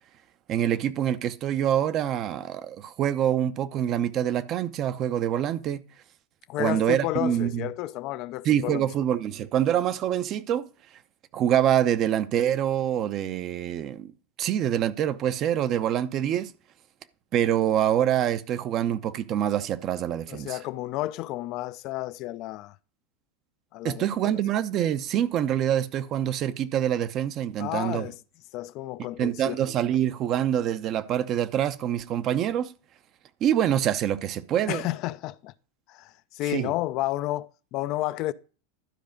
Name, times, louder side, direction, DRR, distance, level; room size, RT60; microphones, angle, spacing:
voice 1, 0.5-5.8 6.6-7.7 8.4-10.7 11.3-14.1 14.4-16.5 17.3-20.6 23.8-28.1 29.2-32.7 33.4-34.8 36.5-36.7, right 10 dB, 40° right, 0.7 m, -25 dB
voice 2, 6.5-8.9 20.3-22.8 23.7-24.1 27.6-28.2 28.5-29.6 34.7-35.5 35.9-38.3, left 16 dB, 50° left, 0.4 m, -31 dB
12.0 x 4.8 x 5.2 m
hypercardioid pair, 110°, 0 cm